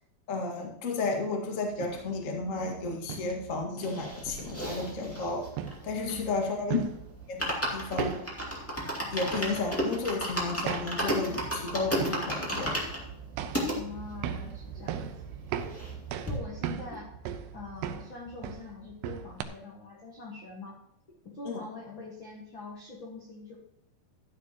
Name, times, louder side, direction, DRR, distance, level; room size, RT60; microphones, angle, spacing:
voice 1, 0.3-5.4 5.8-6.8 7.3-8.2 9.1-12.7 21.4-21.6, left 3 dB, 45° left, 0 dB, 0.9 m, -32 dB
sound 1, 1.7-19.4, right 9 dB, 80° right, 2.8 m, -40 dB
sound 2, 3.8-6.6 6.9-7.0 7.2-13.8 14.3-14.4 14.6-14.7 15.0-16.0 16.3-16.4, equal, 15° left, 0.5 m, -33 dB
voice 2, 5.9-6.3 13.7-15.1 16.2-17.2 17.5-20.8 21.2-23.6, left 3 dB, 60° left, -3 dB, 1.2 m, -43 dB
13.0 x 9.9 x 3.0 m, 0.80 s
omnidirectional pair, 4.9 m